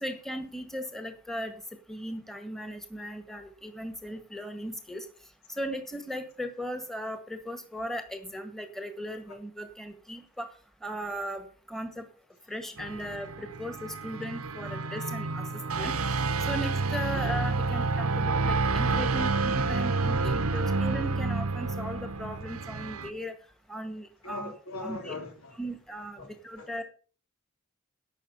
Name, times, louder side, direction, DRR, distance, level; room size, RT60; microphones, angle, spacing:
voice 1, 0.0-1.5 1.9-5.1 5.5-10.5 10.8-12.0 12.5-15.5 15.7-23.3 23.7-24.5 24.8-25.1 25.5-26.8, equal, ahead, 1.6 m, -37 dB
sound 1, 12.8-23.1, right 3 dB, 80° right, 1.1 m, -29 dB
voice 2, 18.8-19.4 24.2-25.6 26.2-26.3 26.6-26.7, left 2 dB, 75° left, 3.2 m, -41 dB
12.0 x 8.0 x 6.9 m
head